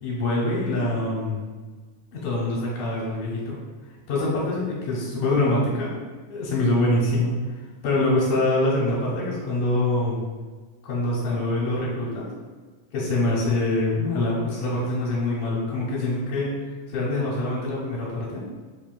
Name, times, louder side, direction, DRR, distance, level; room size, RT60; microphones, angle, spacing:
voice 1, 0.0-1.4 2.1-3.6 4.1-5.9 6.3-7.4 7.8-10.2 10.8-12.3 12.9-16.5 16.9-18.4, left 2 dB, 75° left, -7 dB, 2.3 m, -24 dB
5.1 x 3.4 x 2.3 m, 1.4 s
omnidirectional pair, 3.8 m